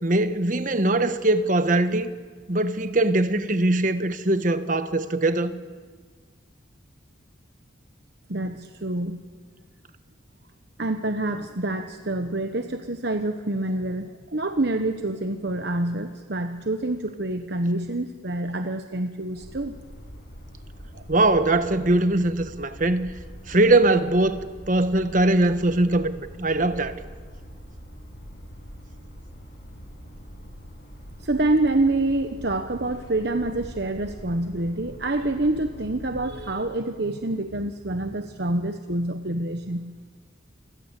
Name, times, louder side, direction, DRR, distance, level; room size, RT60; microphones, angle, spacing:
voice 1, 0.0-2.1 2.5-5.6 21.1-23.1 23.5-24.4 24.7-27.0, right 2 dB, 40° right, 1.3 m, -21 dB
voice 2, 8.3-9.2 10.8-19.8 20.9-21.0 31.2-39.9, right 2 dB, 55° right, 1.1 m, -27 dB
sound 1, 19.3-36.5, equal, 60° left, 6.7 m, -43 dB
28.5 x 21.5 x 8.3 m
head